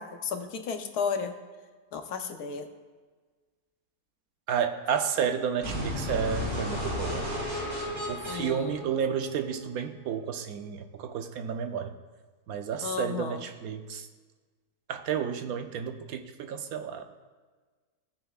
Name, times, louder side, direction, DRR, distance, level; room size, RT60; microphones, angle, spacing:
voice 1, 0.0-1.3 1.9-2.7 8.3-8.8 12.8-13.4, left 6 dB, 85° left, 6 dB, 1.4 m, -33 dB
voice 2, 4.5-7.3 8.1-11.9 12.5-14.1 14.9-17.0, right 7 dB, 75° right, 7 dB, 1.1 m, -31 dB
sound 1, 5.6-9.6, left 1 dB, 60° right, 3.7 m, -33 dB
17.5 x 6.8 x 2.4 m, 1.4 s
omnidirectional pair, 1.6 m